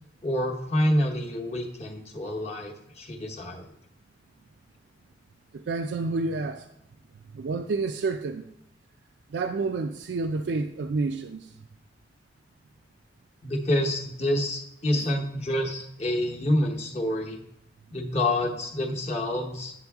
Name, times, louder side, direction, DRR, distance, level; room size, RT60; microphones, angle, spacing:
voice 1, 0.2-3.7 13.4-17.4 17.9-19.7, left 1 dB, 35° left, 0.9 m, -27 dB
voice 2, 5.7-6.7 7.3-8.4 9.3-11.5 14.9-15.1, right 3 dB, 70° right, 0.4 m, -29 dB
9.2 x 6.2 x 3.5 m
head